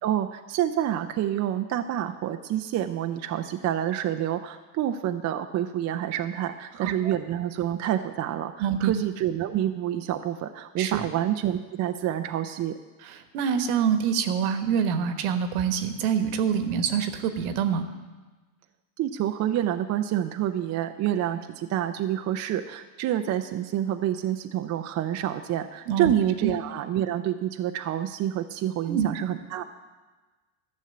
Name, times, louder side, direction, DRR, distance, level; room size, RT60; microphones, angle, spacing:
voice 1, 0.0-12.8 19.0-29.6, right 11 dB, 35° right, 6 dB, 0.6 m, -28 dB
voice 2, 6.7-7.1 8.6-8.9 10.8-11.1 13.0-17.8 25.9-26.1 26.4-26.5 28.9-29.1, right 7 dB, 60° right, 8 dB, 1.4 m, -26 dB
12.5 x 6.4 x 7.8 m, 1.3 s
hypercardioid pair, 95°, 50 cm